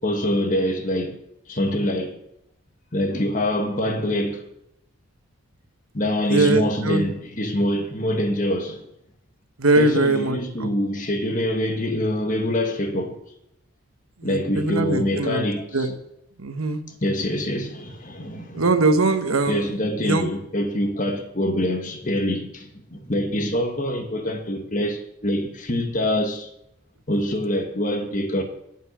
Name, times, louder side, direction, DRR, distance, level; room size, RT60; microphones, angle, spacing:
voice 1, 0.0-1.2 1.5-2.2 2.9-4.4 5.9-8.8 9.7-13.2 14.2-15.9 16.9-18.7 19.5-26.5 27.1-28.4, left 1 dB, 35° left, 1.5 m, -25 dB
voice 2, 6.3-7.0 9.6-10.7 14.2-15.4 15.7-15.9 16.4-16.8 18.5-19.7 20.0-20.3, right 2 dB, 80° right, 1.2 m, -21 dB
13.0 x 5.7 x 8.6 m
head